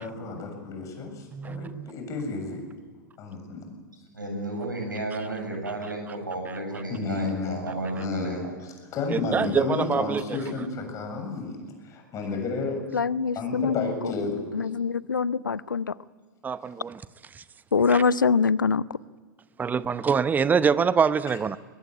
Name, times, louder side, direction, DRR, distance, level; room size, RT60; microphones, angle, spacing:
voice 1, 0.0-2.6 3.2-3.7 6.9-7.6 7.9-11.6 11.8-12.8 13.4-14.4, left 4 dB, 30° left, 7.4 m, -31 dB
voice 2, 1.3-1.9 6.5-6.6 9.1-10.4 16.4-17.0 17.3-17.4 17.9-18.0 19.6-21.6, right 6 dB, 15° right, 0.8 m, -25 dB
voice 3, 4.1-8.5, right 2 dB, 85° right, 7.8 m, -32 dB
voice 4, 12.9-14.1 14.5-15.9 17.7-18.9, left 5 dB, 80° left, 0.7 m, -24 dB
23.0 x 21.0 x 9.6 m
figure-of-eight pair, 95°, 10 cm